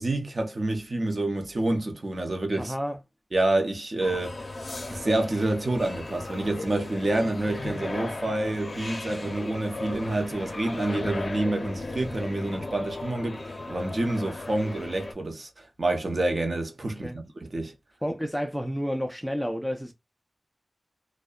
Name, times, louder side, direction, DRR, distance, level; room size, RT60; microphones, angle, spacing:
voice 1, 0.0-2.7 3.3-4.4 4.9-17.7, right 2 dB, 50° right, 0.6 m, -28 dB
voice 2, 2.6-3.0 17.0-17.2 18.0-19.9, equal, ahead, 0.3 m, -30 dB
sound 1, 4.0-15.1, left 2 dB, 50° left, 0.5 m, -36 dB
2.6 x 2.1 x 2.2 m
wide cardioid pair, 90°, 0 cm